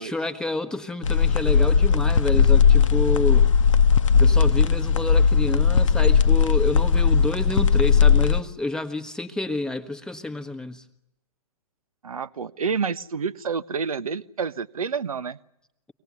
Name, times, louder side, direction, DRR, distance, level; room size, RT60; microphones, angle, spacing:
voice 1, 0.0-3.5 4.2-10.8, left 2 dB, 5° left, 8 dB, 1.1 m, -29 dB
sound 1, 1.0-8.4, left 6 dB, 60° left, 0.9 m, -18 dB
voice 2, 12.0-15.4, right 5 dB, 70° right, 16 dB, 0.9 m, -29 dB
24.5 x 19.0 x 9.5 m, 0.84 s
figure-of-eight pair, 120°, 19 cm